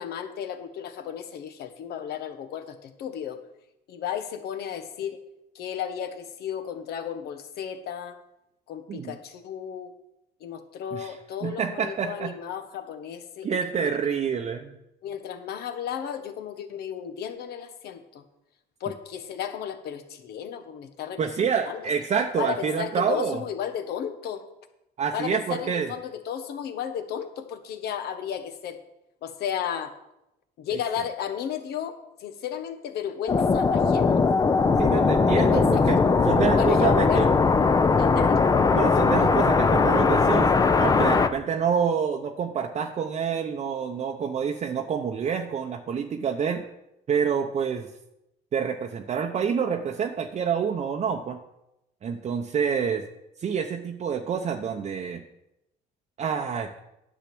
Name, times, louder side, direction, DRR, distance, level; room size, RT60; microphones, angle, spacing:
voice 1, 0.0-3.4 3.9-5.2 5.5-8.2 8.7-9.9 10.4-13.9 15.0-18.2 18.8-21.9 22.4-24.4 25.1-28.8 29.2-29.9 30.6-34.2 35.3-35.8 36.6-37.3 38.0-38.4, left 9 dB, 70° left, 8 dB, 1.2 m, -34 dB
voice 2, 10.9-12.4 13.4-14.8 21.2-23.4 25.0-25.9 34.8-37.3 38.7-40.5 40.8-46.6 47.1-47.9 48.5-51.4 52.0-53.0 53.4-55.2 56.2-56.7, right 7 dB, 40° right, 3 dB, 0.8 m, -27 dB
sound 1, 33.3-41.3, left 4 dB, 20° left, 0.6 m, -20 dB
10.5 x 7.4 x 6.1 m, 0.88 s
cardioid pair, 110°, 17 cm